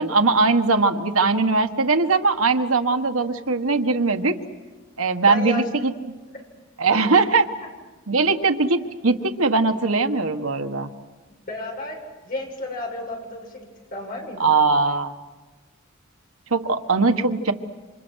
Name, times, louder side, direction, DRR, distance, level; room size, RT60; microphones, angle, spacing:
voice 1, 0.0-4.3 5.0-5.9 6.8-7.4 8.1-10.9 14.4-15.1 16.5-17.5, right 3 dB, 85° right, 7 dB, 1.6 m, -20 dB
voice 2, 5.3-5.9 6.3-6.4 6.9-7.2 11.5-12.0 12.2-14.5, left 2 dB, 45° left, 0 dB, 7.7 m, -33 dB
29.0 x 27.0 x 6.5 m, 1.3 s
head